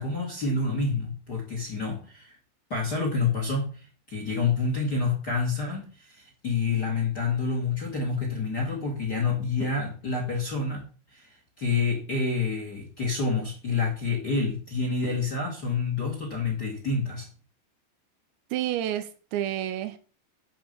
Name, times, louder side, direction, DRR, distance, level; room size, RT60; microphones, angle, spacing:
voice 1, 0.0-2.4 2.7-10.8 11.1-11.3 11.6-17.3, left 4 dB, 35° left, 1.7 m, -28 dB
voice 2, 18.5-20.0, right 12 dB, 85° right, 3.2 m, -29 dB
10.0 x 4.9 x 6.9 m
omnidirectional pair, 5.1 m